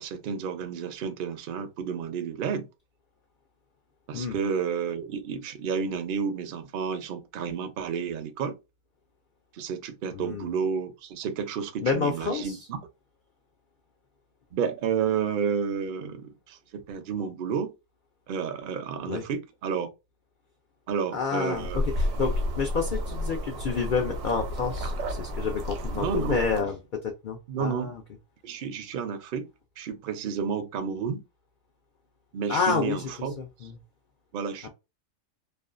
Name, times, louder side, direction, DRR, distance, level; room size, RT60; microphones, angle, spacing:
voice 1, 0.0-2.7 4.1-8.6 9.5-12.8 14.5-17.7 18.3-19.9 20.9-21.8 25.9-26.4 27.5-27.9 28.4-29.5 29.8-31.2 32.3-33.3 34.3-34.7, right 6 dB, 60° right, 0.6 m, -31 dB
voice 2, 10.1-10.5 11.8-12.6 19.1-19.2 21.1-28.0 32.5-33.8 34.6-34.7, left 5 dB, 70° left, 0.4 m, -29 dB
sound 1, 21.5-26.6, left 1 dB, 85° right, 1.0 m, -31 dB
2.4 x 2.2 x 2.4 m
omnidirectional pair, 1.4 m